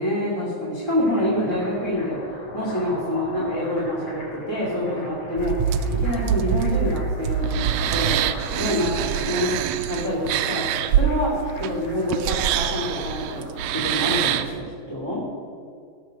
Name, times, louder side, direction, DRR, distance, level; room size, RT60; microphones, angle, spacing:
voice 1, 0.0-2.2 2.5-5.5 6.0-9.6 9.9-10.6 10.9-13.2 13.7-14.6 14.9-15.2, left 1 dB, 10° left, -7 dB, 1.9 m, -26 dB
sound 1, 0.8-14.6, left 1 dB, 55° left, 4.3 m, -40 dB
sound 2, 5.4-14.6, right 9 dB, 80° right, 1.8 m, -25 dB
17.5 x 6.4 x 6.4 m, 2.3 s
omnidirectional pair, 3.3 m